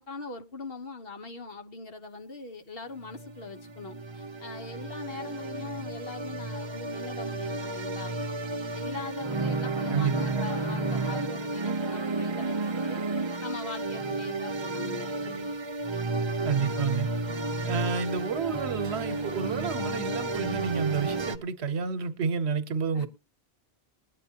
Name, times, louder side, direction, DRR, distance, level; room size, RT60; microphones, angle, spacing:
voice 1, 0.0-8.1 8.7-13.0 13.4-15.5 22.9-23.1, left 3 dB, 65° left, 1.3 m, -41 dB
sound 1, 2.9-21.4, right 3 dB, 30° right, 0.6 m, -32 dB
voice 2, 16.4-17.1 17.6-23.1, right 5 dB, 85° right, 1.1 m, -30 dB
21.0 x 9.1 x 2.8 m
omnidirectional pair, 1.1 m